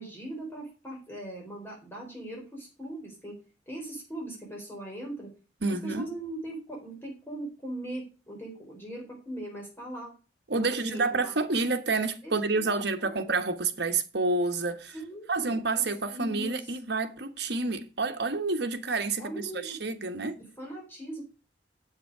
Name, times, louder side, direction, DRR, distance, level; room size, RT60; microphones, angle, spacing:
voice 1, 0.0-3.4 3.7-5.3 5.7-10.1 10.5-11.4 12.2-13.4 14.9-16.7 19.2-19.8 20.4-21.2, right 1 dB, 10° left, 4.3 m, -40 dB
voice 2, 5.6-6.0 10.5-14.9 15.3-19.3 19.6-20.4, right 3 dB, 65° right, 1.4 m, -29 dB
8.4 x 8.0 x 4.9 m
head